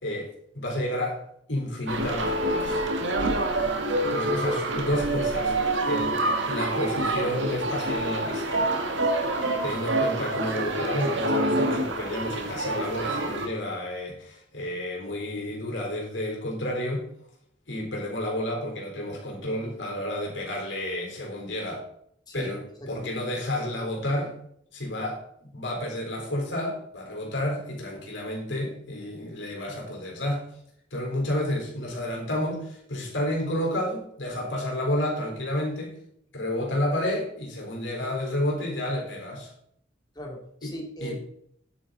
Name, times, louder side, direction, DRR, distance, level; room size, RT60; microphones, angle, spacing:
voice 1, 0.0-1.2 1.5-2.8 4.1-6.2 6.5-8.6 9.6-17.1 17.7-21.8 22.3-24.4 24.7-30.5 30.9-36.0 36.3-39.5 40.6-41.1, left 1 dB, 85° left, -1 dB, 4.0 m, -30 dB
sound 1, 1.9-13.5, right 2 dB, 85° right, 1.7 m, -27 dB
voice 2, 22.3-23.2 40.2-41.1, equal, 20° left, 0 dB, 2.2 m, -38 dB
10.0 x 9.4 x 4.0 m, 0.69 s
head